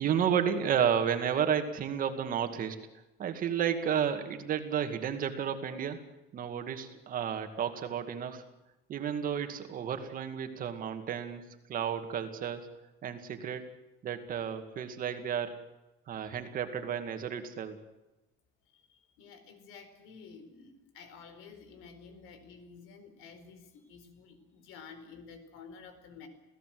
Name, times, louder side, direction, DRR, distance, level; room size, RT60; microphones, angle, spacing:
voice 1, 0.0-2.8 3.2-6.0 6.3-8.4 8.9-11.4 11.7-12.7 13.0-13.6 14.0-15.6 16.1-17.8, right 8 dB, 40° right, 7 dB, 2.2 m, -32 dB
voice 2, 18.7-26.3, left 5 dB, 80° left, 9 dB, 4.5 m, -51 dB
28.0 x 17.0 x 7.8 m, 1.0 s
cardioid pair, 170°, 21 cm